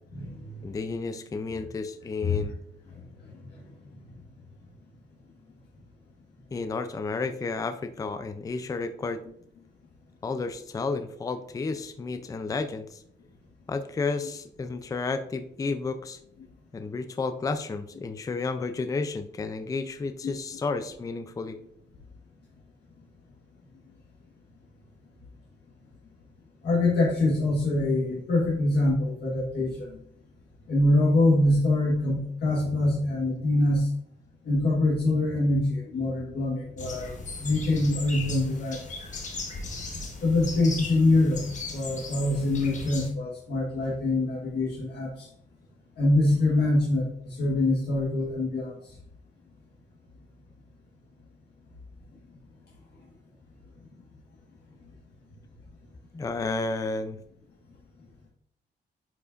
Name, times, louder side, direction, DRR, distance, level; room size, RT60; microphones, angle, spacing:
voice 1, 0.1-0.6 1.5-1.6 2.2-2.4 3.5-3.6 26.6-29.9 30.7-33.9 34.4-37.1 37.4-38.8 40.2-41.4 41.7-45.3 46.0-48.7, left 2 dB, 65° left, -4 dB, 1.4 m, -24 dB
voice 2, 0.6-2.5 6.5-9.2 10.2-13.0 13.7-16.2 16.7-21.6 56.1-57.2, left 4 dB, 20° left, 10 dB, 0.4 m, -32 dB
sound 1, 36.8-43.1, left 3 dB, 40° left, 1.2 m, -37 dB
9.5 x 4.8 x 2.5 m, 0.68 s
wide cardioid pair, 140°, 18 cm